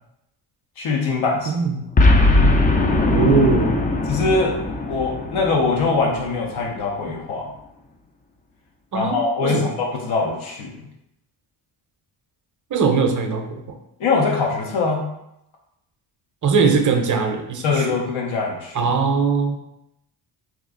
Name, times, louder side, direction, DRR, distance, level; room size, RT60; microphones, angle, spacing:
voice 1, 0.8-1.6 4.1-7.5 8.9-10.9 14.0-15.0 17.6-18.9, left 4 dB, 85° left, 0 dB, 0.8 m, -22 dB
voice 2, 1.5-1.9 3.1-3.8 8.9-9.7 12.7-13.6 16.4-17.9 18.7-19.6, right 5 dB, 40° right, 4 dB, 0.6 m, -20 dB
Boom, 2.0-6.4, left 2 dB, 20° left, 0.3 m, -19 dB
3.0 x 2.4 x 3.7 m, 0.83 s
cardioid pair, 85°, 47 cm